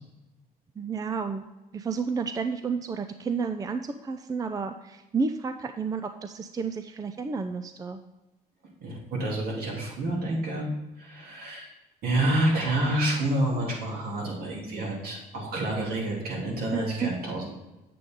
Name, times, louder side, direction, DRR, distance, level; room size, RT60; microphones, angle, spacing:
voice 1, 0.8-1.5 1.7-8.0 16.7-17.1, right 5 dB, 20° right, 8 dB, 0.4 m, -31 dB
voice 2, 8.8-10.7 11.0-11.7 12.0-17.5, right 1 dB, 65° right, -2 dB, 2.9 m, -28 dB
8.4 x 7.6 x 3.7 m, 1.0 s
cardioid pair, 110°, 17 cm